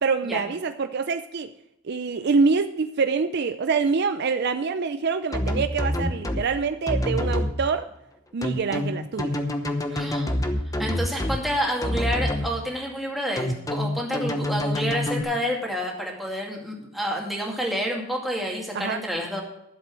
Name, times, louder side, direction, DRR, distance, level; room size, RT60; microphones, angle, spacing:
voice 1, 0.0-1.5 1.8-7.9 8.3-9.3 18.7-19.0, right 4 dB, 50° right, 9 dB, 0.5 m, -25 dB
sound 1, 5.3-6.4 6.9-7.5 8.4-11.4 11.8-12.5 13.4-15.2, left 1 dB, 15° left, 0.9 m, -26 dB
voice 2, 9.9-10.3 10.8-19.4, equal, ahead, -1 dB, 2.2 m, -29 dB
11.5 x 7.6 x 6.1 m, 0.83 s
head